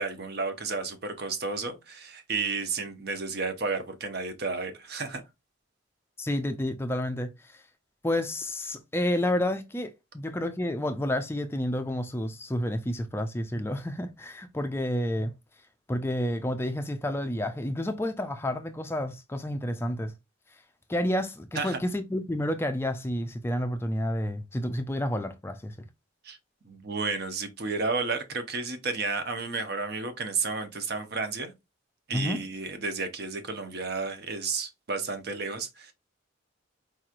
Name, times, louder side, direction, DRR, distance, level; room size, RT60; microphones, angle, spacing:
voice 1, 0.0-5.2 21.5-21.8 26.2-26.4 26.6-31.5 32.1-35.9, right 4 dB, 50° right, 0.8 m, -32 dB
voice 2, 6.2-7.6 8.0-15.3 15.9-20.1 20.9-25.8 32.1-32.4, left 1 dB, 10° left, 0.4 m, -30 dB
4.7 x 3.0 x 2.5 m
head